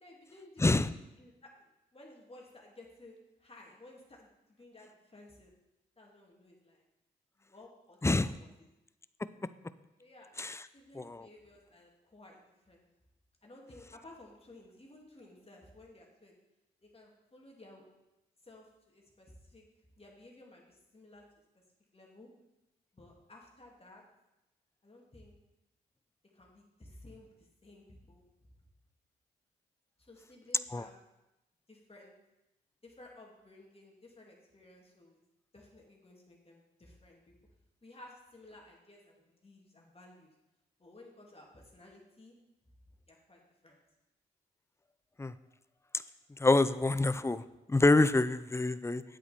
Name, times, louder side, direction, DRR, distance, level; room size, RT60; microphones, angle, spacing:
voice 1, 0.0-0.6 1.2-5.5 6.0-6.8 7.4-8.0 8.4-8.5 10.0-10.3 10.7-12.9 13.4-16.4 16.8-17.9 18.4-19.6 20.0-21.2 21.9-22.3 22.9-24.0 24.8-25.3 26.3-28.5 30.0-31.0 31.7-32.1 32.8-35.2 35.5-37.3 37.8-40.3 40.8-42.3 43.1-43.8, left 2 dB, 30° left, -1 dB, 2.8 m, -56 dB
voice 2, 0.6-0.9 8.0-8.3 10.4-10.6 10.9-11.3 30.7-30.9 45.2-45.3 46.4-49.0, left 2 dB, 15° left, 15 dB, 0.5 m, -27 dB
9.2 x 8.3 x 4.4 m, 0.96 s
hypercardioid pair, 40°, 19 cm